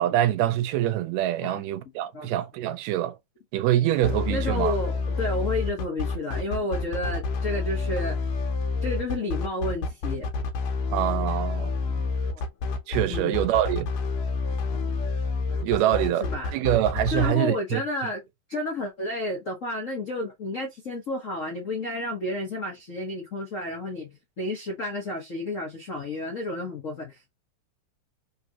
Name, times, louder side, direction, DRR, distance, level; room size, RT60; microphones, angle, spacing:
voice 1, 0.0-3.2 3.5-4.7 10.9-11.7 12.9-13.9 15.6-16.3 16.5-17.8, right 13 dB, 80° right, 1.7 m, -25 dB
sound 1, 4.0-17.3, left 4 dB, 70° left, 1.8 m, -28 dB
voice 2, 4.3-8.2 8.8-10.3 11.9-12.4 13.1-13.4 14.7-15.0 15.5-15.9 16.2-16.6 17.1-18.2 18.5-27.3, left 2 dB, 90° left, 0.7 m, -31 dB
3.9 x 3.8 x 2.9 m
omnidirectional pair, 3.3 m